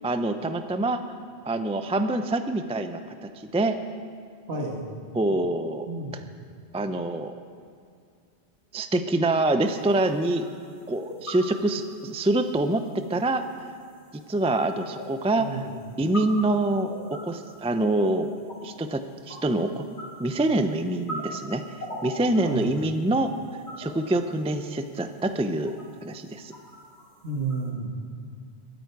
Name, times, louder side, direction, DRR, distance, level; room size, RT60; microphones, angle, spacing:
voice 1, 0.0-1.0 1.5-3.8 5.2-5.9 6.7-7.3 8.7-10.5 10.9-13.7 14.3-15.6 16.0-18.3 18.6-19.9 20.2-21.6 22.0-23.3 23.8-26.5, right 2 dB, 10° right, 8 dB, 0.3 m, -25 dB
voice 2, 4.5-4.9 5.9-6.1 15.4-15.7 22.4-22.7 27.2-27.9, right 3 dB, 70° right, 0 dB, 2.0 m, -31 dB
sound 1, 9.6-27.7, equal, 85° left, 2.9 m, -43 dB
22.0 x 9.4 x 4.7 m, 2.3 s
omnidirectional pair, 1.1 m